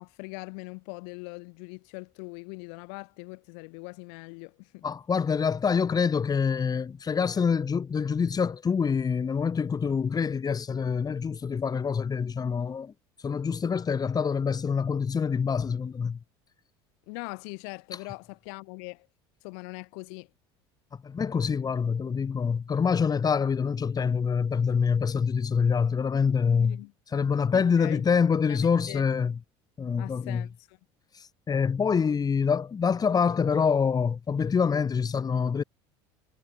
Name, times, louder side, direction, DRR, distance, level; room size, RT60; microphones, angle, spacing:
voice 1, 0.0-4.8 17.1-19.1 19.4-20.3 26.6-26.9 27.5-28.0 28.5-29.0 30.0-30.8, left 40 dB or more, 75° left, 2.0 m, -41 dB
voice 2, 4.8-12.9 13.2-16.2 21.0-26.8 27.1-29.4 29.8-30.5 31.2-35.6, left 6 dB, 30° left, 2.4 m, -26 dB
supercardioid pair, 90°, 14 cm